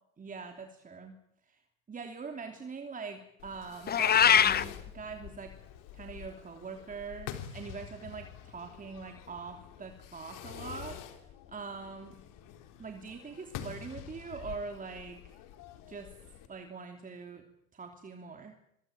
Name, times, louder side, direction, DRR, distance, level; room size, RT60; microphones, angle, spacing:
voice 1, 0.2-1.1 1.4-1.6 1.9-5.5 5.9-12.2 12.8-15.4 15.9-16.1 16.5-17.4 17.7-18.6, right 5 dB, 20° right, 5 dB, 3.0 m, -43 dB
Fireworks, 3.4-16.5, left 10 dB, 50° left, 3.9 m, -47 dB
Meow, 3.9-4.6, left 8 dB, 25° left, 1.1 m, -22 dB
25.0 x 22.5 x 9.2 m, 0.80 s
hypercardioid pair, 95°, 41 cm